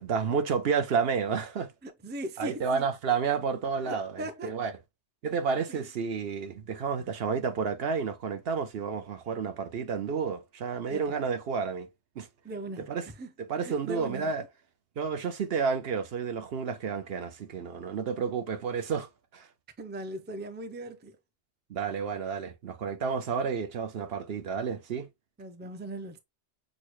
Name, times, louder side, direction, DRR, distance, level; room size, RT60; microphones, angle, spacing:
voice 1, 0.0-1.7 2.4-4.7 5.2-11.9 12.2-12.3 12.9-13.0 13.5-14.4 15.0-19.5 21.7-25.1, right 6 dB, 65° right, 0.9 m, -31 dB
voice 2, 1.8-2.9 3.8-4.5 5.7-5.8 7.0-7.1 10.9-11.2 12.4-13.3 13.6-14.3 19.8-21.2 25.4-26.2, right 1 dB, 15° right, 0.4 m, -39 dB
6.3 x 2.1 x 3.1 m
omnidirectional pair, 1.1 m